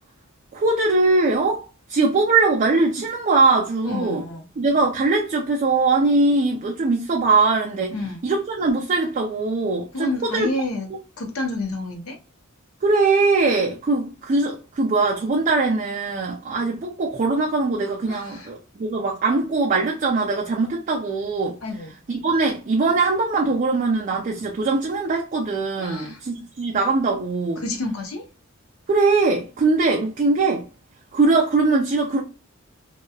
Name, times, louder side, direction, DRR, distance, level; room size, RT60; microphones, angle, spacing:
voice 1, 0.5-4.2 4.6-7.9 8.2-10.5 12.8-21.6 22.1-27.6 28.9-30.7 31.1-32.2, right 3 dB, 35° right, 0.4 m, -21 dB
voice 2, 3.8-4.4 7.9-8.2 9.9-10.9 11.2-12.2 18.1-18.5 21.6-22.0 25.8-26.2 27.6-28.2, left 2 dB, 80° left, 0.7 m, -29 dB
2.8 x 2.2 x 2.3 m
head